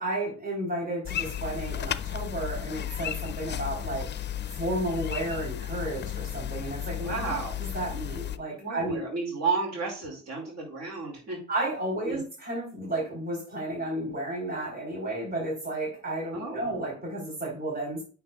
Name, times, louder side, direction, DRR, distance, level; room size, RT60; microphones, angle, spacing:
voice 1, 0.0-4.3 4.6-9.0 11.5-18.0, right 1 dB, 30° right, -4 dB, 3.5 m, -32 dB
sound 1, 1.1-8.4, left 10 dB, 35° left, 0.4 m, -34 dB
voice 2, 7.0-7.6 8.6-11.4 12.0-12.2 16.3-16.7, right 4 dB, 60° right, 0 dB, 2.1 m, -32 dB
8.6 x 5.7 x 2.3 m, 0.38 s
cardioid pair, 90°, 30 cm